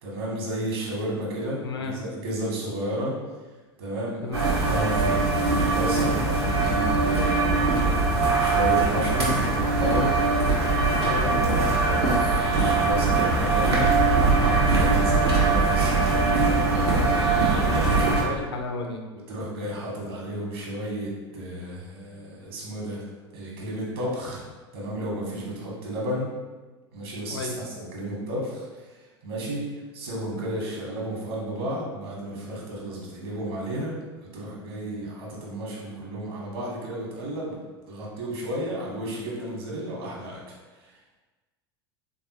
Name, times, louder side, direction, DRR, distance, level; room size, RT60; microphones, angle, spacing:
voice 1, 0.0-3.1 3.8-10.2 10.8-11.5 11.8-13.9 14.3-18.2 19.1-23.0 23.3-24.4 24.7-26.3 26.9-28.9 29.2-29.7 29.9-37.6 37.9-40.4 40.8-40.9, right 1 dB, 65° right, -3 dB, 1.4 m, -33 dB
voice 2, 1.6-2.0 4.2-4.6 11.0-11.5 18.1-19.0 27.3-27.6, left 3 dB, 75° left, 3 dB, 0.6 m, -32 dB
sound 1, 4.3-18.2, right 3 dB, 85° right, 0.9 m, -22 dB
3.7 x 3.4 x 2.9 m, 1.3 s
figure-of-eight pair, 80°, 13 cm